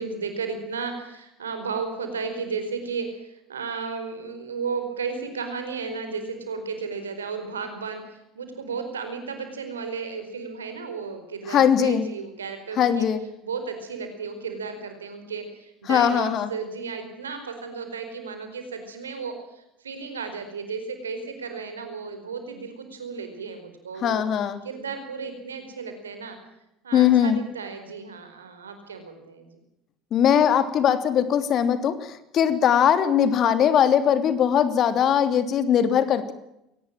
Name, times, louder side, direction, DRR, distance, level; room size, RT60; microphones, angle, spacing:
voice 1, 0.0-13.1 13.4-24.2 24.6-26.4 26.8-29.5, right 5 dB, 90° right, 7 dB, 4.6 m, -34 dB
voice 2, 11.5-12.1 12.8-13.2 15.9-16.5 24.0-24.6 26.9-27.4 30.1-36.3, left 9 dB, 50° left, 11 dB, 2.9 m, -20 dB
22.0 x 19.0 x 7.5 m, 0.86 s
hypercardioid pair, 70°, 0 cm